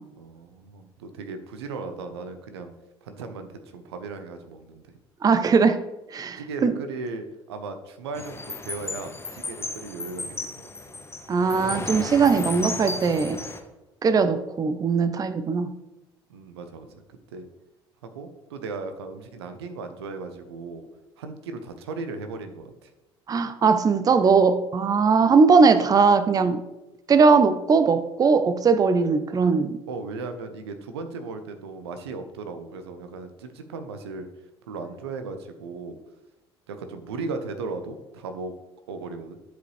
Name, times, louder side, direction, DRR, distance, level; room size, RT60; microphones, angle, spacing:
voice 1, 0.2-2.7 3.0-5.0 6.4-10.9 16.3-17.5 18.0-20.9 21.2-22.9 29.9-34.3 34.7-36.0 36.7-38.6 38.9-39.4, right 3 dB, 80° right, 8 dB, 0.7 m, -36 dB
voice 2, 5.2-5.8 6.1-6.8 11.3-13.4 14.0-15.7 23.3-26.6 27.1-29.8, right 5 dB, 30° right, 12 dB, 0.5 m, -20 dB
sound 1, 8.1-13.6, left 3 dB, 20° left, 1.1 m, -34 dB
11.0 x 4.9 x 3.2 m, 1.0 s
hypercardioid pair, 65°, 13 cm